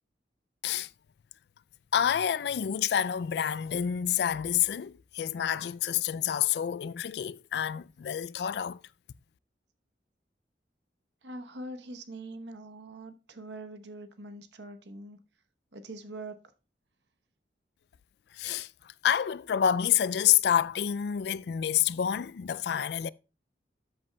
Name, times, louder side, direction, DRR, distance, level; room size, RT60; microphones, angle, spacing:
voice 1, 1.9-8.8 18.3-18.7 19.0-23.1, left 9 dB, 65° left, 0.3 m, -28 dB
voice 2, 11.2-15.2 15.7-16.4, right 2 dB, 75° right, 1.0 m, -43 dB
13.0 x 7.8 x 2.3 m
head